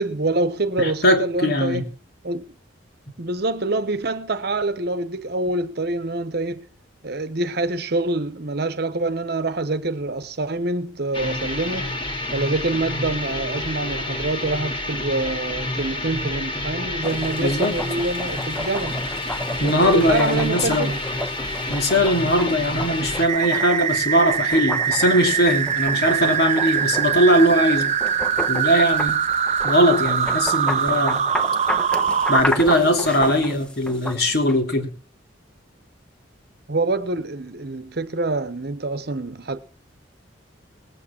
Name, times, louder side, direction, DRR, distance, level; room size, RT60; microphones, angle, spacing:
voice 1, 0.0-1.9 2.2-2.4 3.2-6.6 7.0-11.9 12.3-19.0 19.6-21.0 36.7-39.6, right 2 dB, 55° right, 1.0 m, -26 dB
voice 2, 0.8-1.8 17.4-17.8 19.6-20.9 21.7-27.9 28.5-29.2 29.6-31.3 32.3-34.9, equal, 55° left, 2.9 m, -20 dB
sound 1, 11.1-23.3, left 1 dB, 25° left, 2.3 m, -29 dB
sound 2, 17.0-34.6, left 1 dB, 5° left, 1.0 m, -33 dB
sound 3, 23.2-32.4, right 8 dB, 35° right, 0.6 m, -23 dB
19.5 x 8.7 x 4.5 m
head